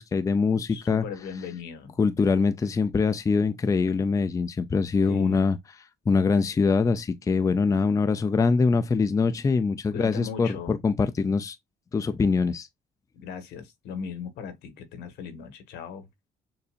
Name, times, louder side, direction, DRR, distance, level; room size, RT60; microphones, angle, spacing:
voice 1, 0.0-1.0 2.0-5.6 6.1-11.6 11.9-12.7, left 4 dB, 20° left, 0.4 m, -23 dB
voice 2, 0.6-1.9 5.1-5.5 9.9-10.8 13.1-16.1, left 6 dB, 80° left, 1.5 m, -38 dB
6.8 x 2.6 x 2.5 m
cardioid pair, 110°, 17 cm